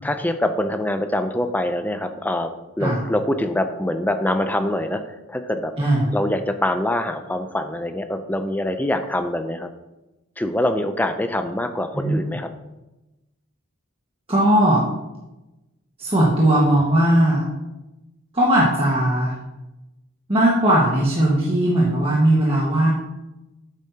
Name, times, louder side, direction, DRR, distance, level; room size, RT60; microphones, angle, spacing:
voice 1, 0.0-2.5 2.8-5.7 6.1-9.7 10.4-12.5, left 1 dB, 10° left, 7 dB, 0.4 m, -24 dB
voice 2, 5.8-6.1 11.9-12.2 14.3-14.8 16.0-17.4 18.3-19.3 20.3-22.9, right 1 dB, 25° right, -6 dB, 1.5 m, -18 dB
10.0 x 8.4 x 2.8 m, 0.99 s
head